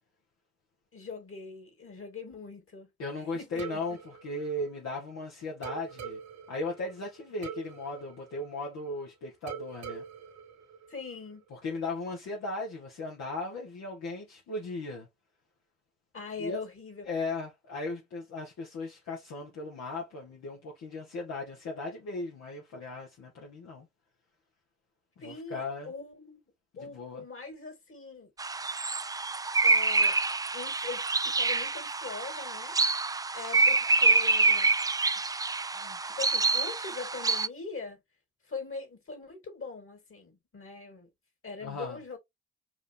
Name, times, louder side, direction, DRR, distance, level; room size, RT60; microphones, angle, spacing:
voice 1, 0.9-2.9 3.3-3.6 10.9-11.4 16.1-17.1 25.2-26.4 26.8-28.3 29.6-30.2 30.5-32.7 33.3-34.7 35.7-38.0 38.5-41.1 41.4-42.2, left 4 dB, 45° left, 2.9 m, -42 dB
voice 2, 3.0-6.2 6.5-10.0 11.5-15.1 16.4-16.6 17.0-23.9 25.2-25.9 26.8-27.2 41.6-42.0, left 2 dB, 65° left, 1.5 m, -37 dB
sound 1, 3.6-5.2 5.6-9.0 9.5-11.4, right 6 dB, 70° right, 1.6 m, -44 dB
sound 2, 28.4-37.5, right 3 dB, 15° right, 0.4 m, -26 dB
4.8 x 2.8 x 3.5 m
hypercardioid pair, 50°, 29 cm